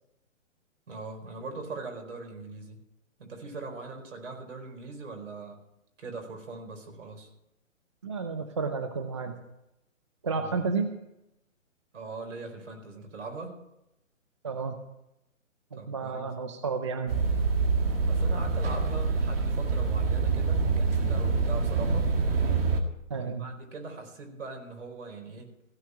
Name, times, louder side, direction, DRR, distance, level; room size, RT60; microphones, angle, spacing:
voice 1, 0.9-2.8 3.2-5.6 6.0-7.3 10.3-10.6 11.9-13.6 15.7-16.3 18.0-22.1 23.1-25.5, right 3 dB, 65° right, 3 dB, 4.6 m, -41 dB
voice 2, 8.0-9.3 10.2-10.9 14.4-14.8 15.7-17.1 23.1-23.5, right 4 dB, 25° right, 7 dB, 0.5 m, -31 dB
sound 1, 17.1-22.8, right 4 dB, 45° right, 1.9 m, -26 dB
16.0 x 5.7 x 9.8 m, 0.86 s
hypercardioid pair, 160°, 40 cm